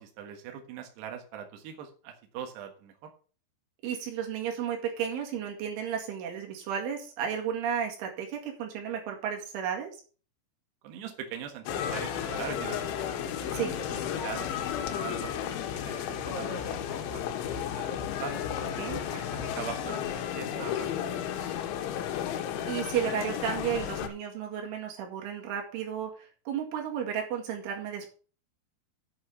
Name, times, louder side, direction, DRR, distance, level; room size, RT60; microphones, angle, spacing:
voice 1, 0.0-3.1 10.8-12.9 13.4-18.4 19.0-21.7, right 9 dB, 70° right, 4 dB, 3.4 m, -42 dB
voice 2, 3.8-9.9 13.5-13.7 18.8-19.0 22.7-28.1, right 8 dB, 90° right, 1 dB, 4.6 m, -33 dB
sound 1, 11.7-24.1, left 9 dB, 85° left, 3.5 m, -33 dB
8.8 x 6.1 x 6.7 m, 0.39 s
omnidirectional pair, 5.3 m